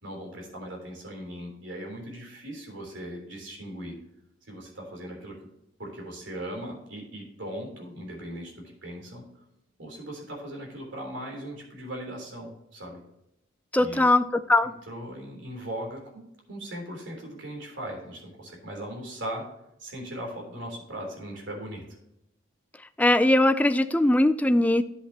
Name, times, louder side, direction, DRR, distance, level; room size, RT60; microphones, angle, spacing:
voice 1, 0.0-3.9 4.4-5.5 5.8-9.2 9.8-13.0 13.8-14.1 14.6-19.5 19.8-21.8, right 1 dB, 60° right, 1 dB, 3.5 m, -39 dB
voice 2, 13.7-14.7 23.0-24.8, left 1 dB, 5° left, 10 dB, 0.4 m, -21 dB
11.0 x 8.0 x 2.9 m, 0.82 s
head